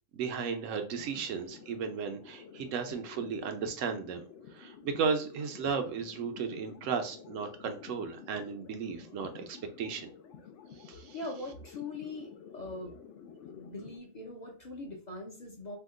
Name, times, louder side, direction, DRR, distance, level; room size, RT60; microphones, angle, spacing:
voice 1, 0.1-4.3 4.5-10.1 10.8-11.1, right 6 dB, 80° right, 6 dB, 1.0 m, -35 dB
sound 1, 0.9-14.0, left 7 dB, 70° left, 0.9 m, -51 dB
voice 2, 11.1-12.9 13.5-15.8, left 2 dB, 45° left, 0 dB, 0.7 m, -41 dB
2.8 x 2.2 x 3.6 m, 0.38 s
omnidirectional pair, 1.3 m